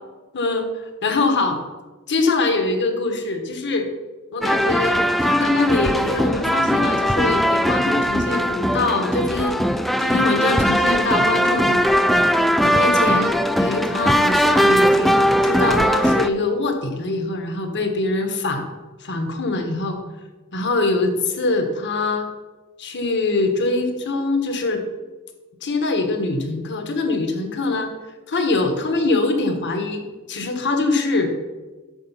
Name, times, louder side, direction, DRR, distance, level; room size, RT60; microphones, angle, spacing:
voice 1, 0.3-1.6 2.1-3.9 4.3-9.6 10.0-12.1 12.6-18.6 19.0-20.0 20.5-22.3 22.8-24.8 25.6-27.9 28.3-31.3, left 3 dB, 55° left, 6 dB, 1.3 m, -23 dB
sound 1, 4.4-16.3, equal, ahead, 0.3 m, -19 dB
8.7 x 6.2 x 5.7 m, 1.2 s
head